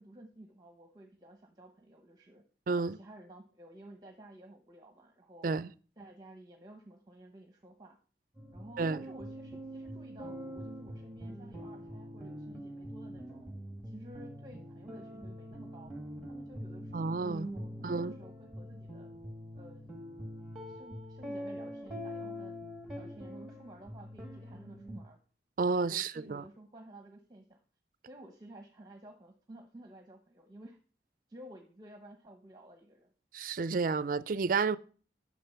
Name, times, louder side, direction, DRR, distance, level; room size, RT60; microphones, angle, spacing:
voice 1, 0.0-2.4 2.8-5.5 6.0-8.0 8.5-13.5 13.8-15.9 16.3-19.1 19.5-19.9 20.7-22.6 22.9-25.2 25.9-27.6 28.1-30.8 31.3-33.1, right 1 dB, 25° right, 1.0 m, -53 dB
voice 2, 2.7-3.0 5.4-5.7 8.8-9.0 16.9-17.5 17.8-18.1 25.6-26.4 33.3-34.8, right 4 dB, 50° right, 0.4 m, -31 dB
sound 1, 8.4-25.0, equal, ahead, 1.8 m, -44 dB
10.0 x 6.5 x 5.6 m
head